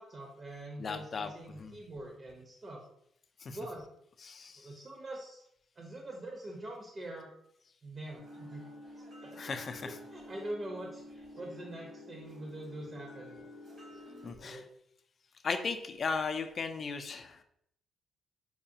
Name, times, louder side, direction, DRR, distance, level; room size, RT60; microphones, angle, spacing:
voice 1, 0.0-2.8 3.4-3.8 4.6-5.4 5.8-7.3 7.8-8.6 9.0-9.6 9.8-13.4 14.4-14.6, right 1 dB, 40° right, 0 dB, 0.8 m, -44 dB
voice 2, 0.8-1.3 1.6-1.8 3.4-3.6 4.2-4.6 9.4-9.9 14.2-14.6 15.4-17.4, left 5 dB, 45° left, 8 dB, 0.4 m, -36 dB
sound 1, 8.2-14.3, left 1 dB, 60° right, 1.3 m, -50 dB
4.7 x 2.2 x 2.7 m, 0.71 s
cardioid pair, 90°, 0 cm